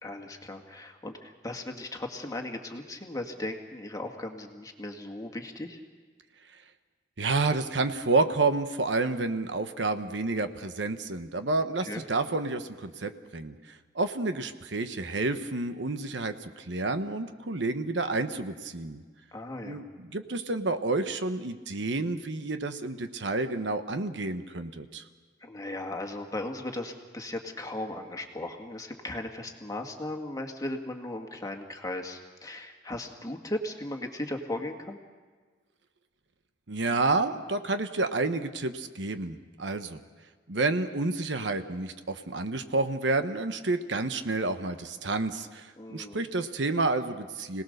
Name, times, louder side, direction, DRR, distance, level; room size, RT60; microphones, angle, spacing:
voice 1, 0.0-5.8 11.9-12.0 19.3-19.8 25.4-35.0 45.8-46.2, left 1 dB, 20° left, 3 dB, 1.8 m, -37 dB
voice 2, 7.2-13.6 13.9-19.0 19.6-25.0 36.7-40.0 40.5-47.6, right 3 dB, 80° right, 9 dB, 1.1 m, -29 dB
26.0 x 18.5 x 6.6 m, 1.5 s
head